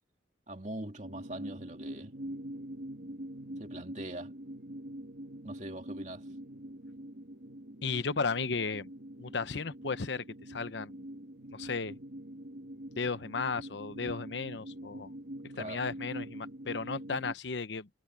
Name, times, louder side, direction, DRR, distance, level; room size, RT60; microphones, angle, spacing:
voice 1, 0.5-2.2 3.6-4.3 5.4-6.3 15.6-15.8, right 1 dB, 40° right, 2.6 m, -42 dB
sound 1, 1.0-17.3, right 1 dB, 65° right, 2.6 m, -44 dB
voice 2, 7.8-8.9 9.2-11.0 11.5-12.0 13.0-15.1 15.6-17.9, left 4 dB, 80° left, 0.9 m, -35 dB
head